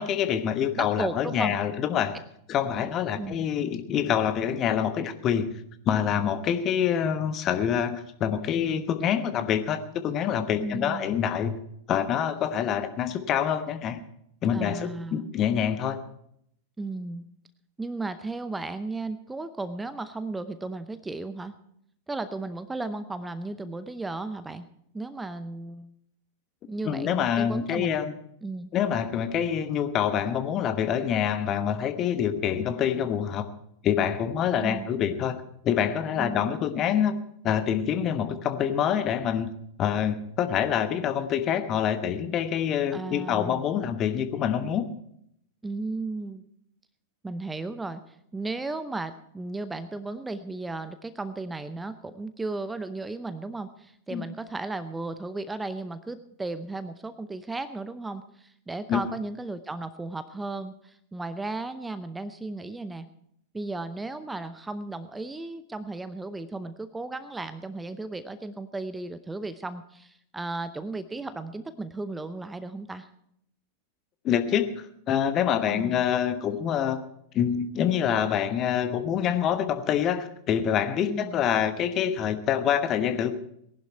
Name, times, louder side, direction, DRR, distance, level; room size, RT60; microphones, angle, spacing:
voice 1, 0.0-2.2 2.5-5.5 5.9-11.5 11.9-14.0 14.4-16.0 26.8-28.1 28.7-33.5 33.8-37.1 37.4-39.5 39.8-44.8 54.1-54.2 58.9-59.0 74.2-74.7 75.1-77.0 77.3-83.3, left 9 dB, 30° left, 10 dB, 1.1 m, -26 dB
voice 2, 0.8-1.6 2.7-3.5 10.6-11.1 14.5-15.3 16.8-17.3 17.8-21.5 22.1-24.7 24.9-25.9 26.7-28.0 28.4-28.7 34.6-34.9 36.2-36.5 42.9-43.6 45.6-46.5 47.2-63.1 63.5-73.1 75.7-76.0 81.0-81.4, right 2 dB, 10° right, 12 dB, 0.7 m, -35 dB
19.0 x 11.0 x 4.4 m, 0.72 s
figure-of-eight pair, 90°, 0 cm